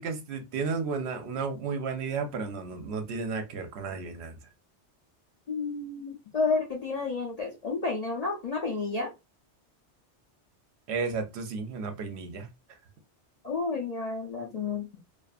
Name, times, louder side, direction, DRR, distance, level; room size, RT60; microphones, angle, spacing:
voice 1, 0.0-4.4 10.9-12.5, right 4 dB, 70° right, 0.8 m, -33 dB
voice 2, 5.5-9.1 13.4-14.9, left 4 dB, 50° left, 0.5 m, -31 dB
2.4 x 2.4 x 2.4 m
omnidirectional pair, 1.2 m